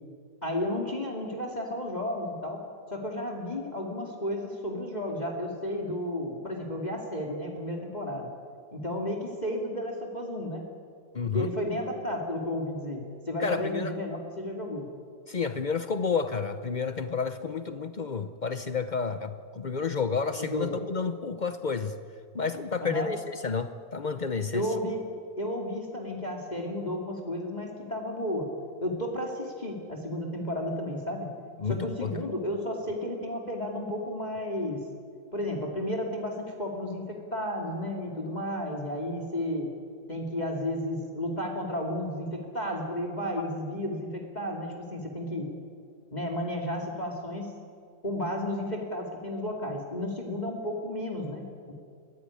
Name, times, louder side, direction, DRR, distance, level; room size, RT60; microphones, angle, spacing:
voice 1, 0.4-2.6 2.9-8.3 8.7-10.6 11.3-14.8 20.3-20.8 22.8-23.1 24.5-25.1 25.4-28.5 28.8-31.3 31.6-34.8 35.3-39.7 40.1-45.5 46.1-47.5 48.0-51.7, left 1 dB, 20° left, 1 dB, 2.6 m, -33 dB
voice 2, 11.1-11.5 13.4-13.9 15.3-21.9 22.3-24.7 31.6-32.1, left 5 dB, 80° left, 10 dB, 0.4 m, -30 dB
22.0 x 16.5 x 9.8 m, 2.3 s
omnidirectional pair, 2.0 m